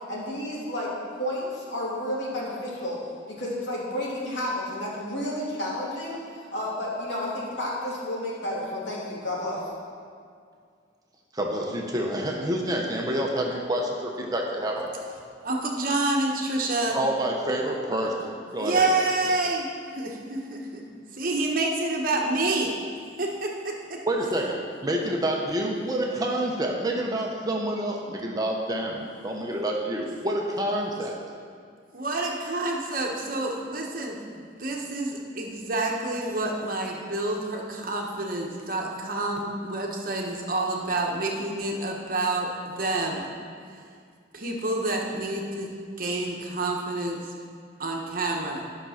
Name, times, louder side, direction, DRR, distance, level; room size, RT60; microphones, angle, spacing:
voice 1, 0.1-0.9 1.1-3.0 3.4-9.6, left 1 dB, 75° left, -6 dB, 2.8 m, -31 dB
voice 2, 11.3-15.0 16.9-18.9 24.1-31.2, right 1 dB, 20° right, -1 dB, 0.9 m, -28 dB
voice 3, 15.4-17.0 18.5-19.7 19.9-20.8 21.1-22.7 23.2-24.0 31.9-43.3 43.7-43.8 44.3-45.7 46.0-47.3 47.8-48.6, right 2 dB, 45° right, 0 dB, 1.2 m, -28 dB
11.0 x 6.0 x 5.8 m, 2.2 s
head